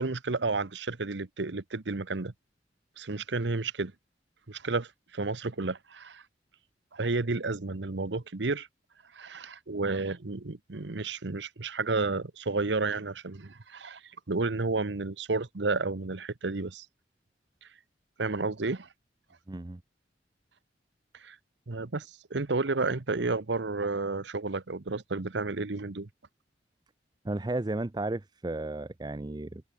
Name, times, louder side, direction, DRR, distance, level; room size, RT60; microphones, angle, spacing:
voice 1, 0.0-2.3 3.0-3.9 4.5-6.2 6.9-8.7 9.1-14.0 14.3-16.9 18.2-18.9 21.1-21.4 21.7-26.1, right 3 dB, 80° right, 1.0 m, -31 dB
voice 2, 19.5-19.8 27.2-29.6, right 2 dB, 25° right, 0.6 m, -33 dB
head